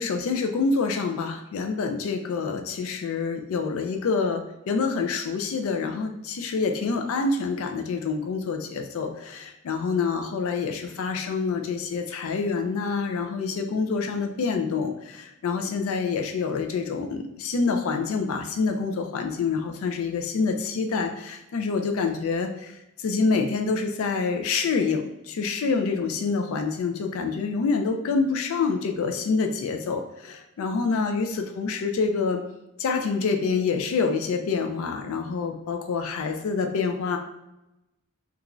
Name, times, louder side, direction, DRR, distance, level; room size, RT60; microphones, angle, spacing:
voice 1, 0.0-32.4 32.8-37.2, left 4 dB, 65° left, 5 dB, 0.3 m, -27 dB
3.0 x 2.3 x 2.4 m, 0.92 s
head